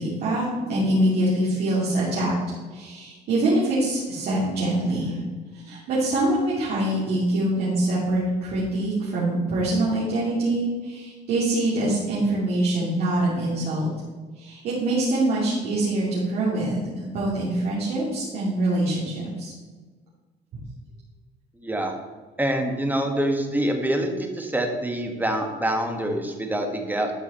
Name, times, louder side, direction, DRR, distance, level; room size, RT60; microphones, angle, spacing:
voice 1, 0.0-2.3 2.7-5.2 5.5-13.9 14.4-19.5, right 1 dB, 70° right, -8 dB, 2.8 m, -24 dB
voice 2, 21.6-21.9 22.4-27.1, right 1 dB, 10° right, 3 dB, 1.4 m, -25 dB
12.0 x 4.8 x 4.3 m, 1.4 s
cardioid pair, 110°, 17 cm